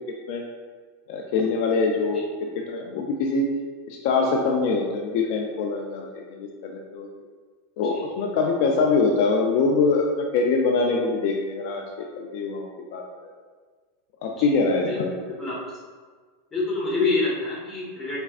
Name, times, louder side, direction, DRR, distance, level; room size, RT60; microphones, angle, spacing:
voice 1, 1.1-3.5 3.9-7.1 7.8-13.0 14.2-15.2, left 4 dB, 65° left, 1 dB, 0.4 m, -24 dB
voice 2, 16.5-18.2, left 3 dB, 15° left, -6 dB, 1.3 m, -26 dB
4.3 x 3.3 x 2.4 m, 1.5 s
hypercardioid pair, 115°, 0 cm